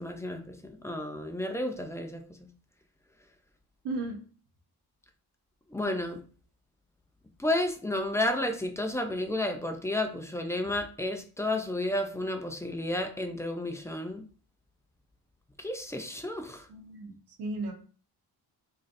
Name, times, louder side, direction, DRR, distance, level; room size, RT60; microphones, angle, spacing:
voice 1, 0.0-2.2 5.7-6.2 7.4-14.3 15.6-16.6, left 1 dB, 10° left, 5 dB, 0.3 m, -32 dB
voice 2, 3.8-4.2 16.7-17.7, right 2 dB, 80° right, 2 dB, 1.0 m, -35 dB
3.9 x 3.1 x 2.5 m, 0.40 s
cardioid pair, 130°, 40 cm